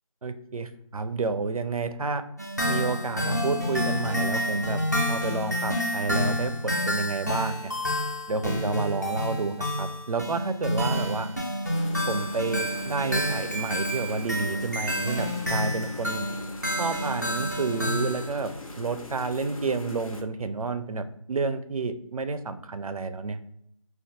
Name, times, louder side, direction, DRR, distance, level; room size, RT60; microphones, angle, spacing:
voice 1, 0.2-2.2 2.7-4.8 5.1-7.7 8.3-11.3 12.1-16.2 16.8-18.5 18.8-23.4, right 4 dB, 80° right, 10 dB, 0.4 m, -30 dB
sound 1, 2.4-18.3, equal, 30° left, 0.5 m, -29 dB
sound 2, 11.7-20.2, left 2 dB, 75° left, 0.6 m, -41 dB
4.4 x 2.3 x 2.5 m, 0.74 s
figure-of-eight pair, 180°, 18 cm